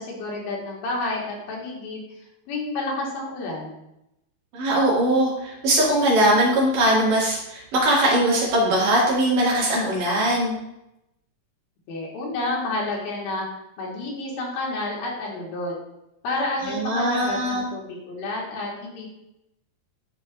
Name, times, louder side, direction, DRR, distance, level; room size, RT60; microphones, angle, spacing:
voice 1, 0.0-2.0 2.5-3.8 11.9-13.5 13.8-15.8 16.2-19.1, left 2 dB, 85° left, -3 dB, 3.3 m, -30 dB
voice 2, 4.5-10.6 16.7-17.7, right 1 dB, 70° right, -5 dB, 3.6 m, -21 dB
11.5 x 4.5 x 2.4 m, 0.87 s
omnidirectional pair, 4.0 m